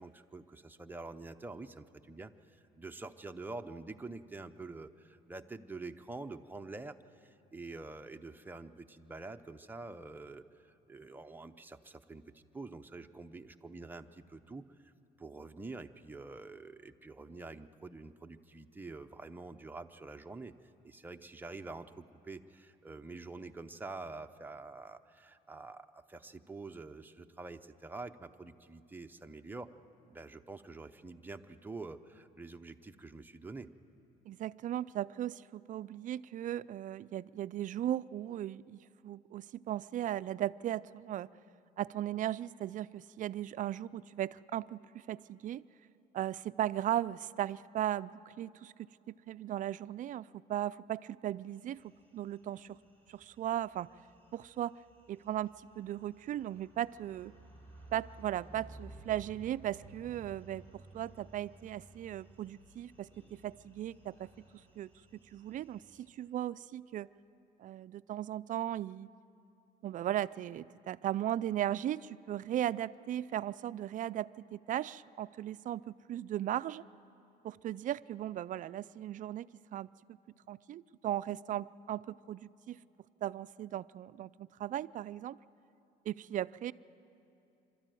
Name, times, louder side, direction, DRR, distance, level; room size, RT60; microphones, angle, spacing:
voice 1, 0.0-14.9 15.2-20.5 20.8-29.7 30.1-33.7, right 3 dB, 10° right, 6 dB, 0.7 m, -47 dB
voice 2, 34.3-41.3 41.8-45.6 46.1-48.7 49.1-51.8 52.1-52.8 53.1-53.9 54.3-54.8 55.1-57.3 57.9-64.3 64.8-64.9 65.3-67.1 67.6-69.1 69.8-76.8 77.4-80.2 80.5-82.8 83.2-85.4 86.1-86.7, right 12 dB, 50° right, 16 dB, 0.4 m, -37 dB
sound 1, 51.5-66.1, right 2 dB, 10° left, 4.1 m, -57 dB
25.0 x 13.0 x 9.2 m, 2.8 s
cardioid pair, 110°, 17 cm